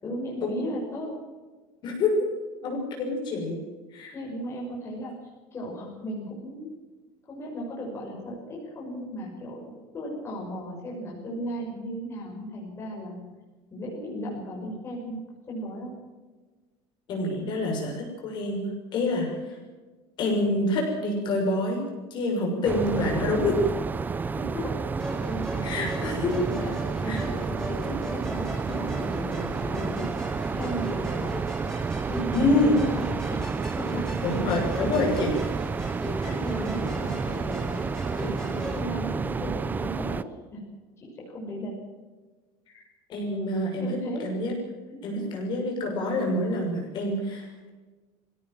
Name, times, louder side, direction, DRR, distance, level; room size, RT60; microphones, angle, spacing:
voice 1, 0.0-1.1 4.1-5.1 5.5-6.7 7.3-13.2 13.7-15.9 24.3-24.8 26.0-26.7 27.2-30.1 30.4-31.4 32.0-34.1 34.4-35.4 36.2-37.8 38.1-40.6 41.0-41.7 43.8-44.3 44.9-45.0, equal, 20° left, -3 dB, 6.1 m, -36 dB
voice 2, 1.8-2.3 2.6-3.6 3.9-4.1 17.1-19.3 20.2-21.8 22.1-23.6 25.6-26.3 27.0-27.2 32.3-32.8 34.2-35.3 36.2-36.3 36.6-36.7 43.1-43.9 44.2-44.5 45.0-47.7, left 2 dB, 40° left, 0 dB, 6.5 m, -27 dB
sound 1, 22.6-40.2, right 5 dB, 15° right, 0.6 m, -30 dB
Musical instrument, 25.0-38.8, left 1 dB, 5° left, 4.1 m, -39 dB
21.5 x 17.0 x 7.5 m, 1.3 s
cardioid pair, 170°, 12 cm